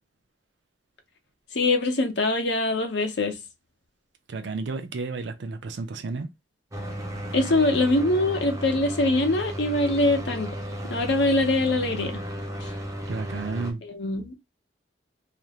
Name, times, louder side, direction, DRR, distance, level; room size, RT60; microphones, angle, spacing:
voice 1, 1.5-3.4 7.3-10.6 10.9-12.2 12.6-12.7 13.8-14.4, left 2 dB, 70° left, 0.7 m, -23 dB
voice 2, 4.3-6.3 13.1-13.8, right 3 dB, 70° right, 0.5 m, -32 dB
sound 1, 6.7-13.7, equal, 20° right, 0.6 m, -34 dB
2.5 x 2.0 x 2.8 m
head